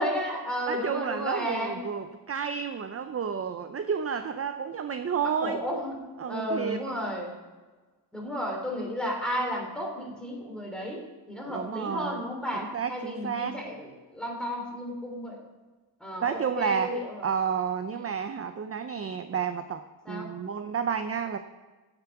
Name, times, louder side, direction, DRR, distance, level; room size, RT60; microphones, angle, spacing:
voice 1, 0.0-1.7 5.4-5.9 6.2-7.3 8.1-15.4 16.0-16.9 20.1-20.3, equal, ahead, -1 dB, 3.3 m, -33 dB
voice 2, 0.7-5.6 6.2-6.8 11.5-12.2 12.5-13.6 16.2-21.4, right 7 dB, 35° right, 9 dB, 0.5 m, -31 dB
15.0 x 6.8 x 4.7 m, 1.3 s
wide cardioid pair, 95°, 44 cm